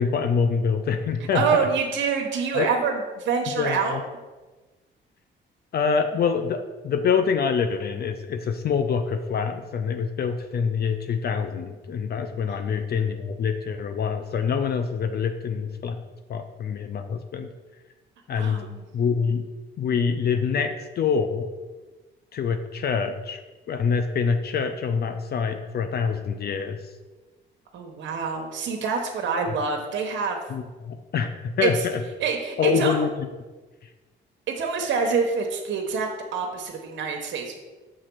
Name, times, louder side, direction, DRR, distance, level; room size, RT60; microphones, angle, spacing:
voice 1, 0.0-1.7 2.5-2.7 3.6-4.0 5.7-16.0 16.3-17.5 18.3-18.6 18.9-19.5 19.8-21.5 22.3-23.4 23.7-26.8 30.5-32.0 32.6-33.1, left 6 dB, 55° left, 8 dB, 0.5 m, -25 dB
voice 2, 1.3-4.0 12.5-12.6 18.4-18.8 27.7-30.4 31.6-31.8 32.2-33.0 34.5-37.6, right 5 dB, 70° right, 2 dB, 0.9 m, -26 dB
6.6 x 3.7 x 6.0 m, 1.3 s
cardioid pair, 90°, 20 cm